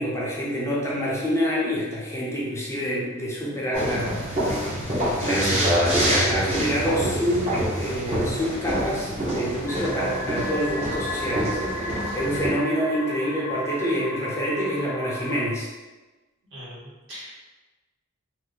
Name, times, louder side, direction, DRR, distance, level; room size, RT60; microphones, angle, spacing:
voice 1, 0.0-4.2 5.2-11.6 11.9-15.7, equal, 15° left, -5 dB, 0.5 m, -27 dB
sound 1, 3.7-12.5, equal, 30° right, 0.8 m, -26 dB
sound 2, 9.7-15.5, left 1 dB, 55° left, 0.7 m, -34 dB
voice 2, 16.5-17.3, equal, 65° right, -8 dB, 1.3 m, -41 dB
2.6 x 2.6 x 3.7 m, 1.2 s
head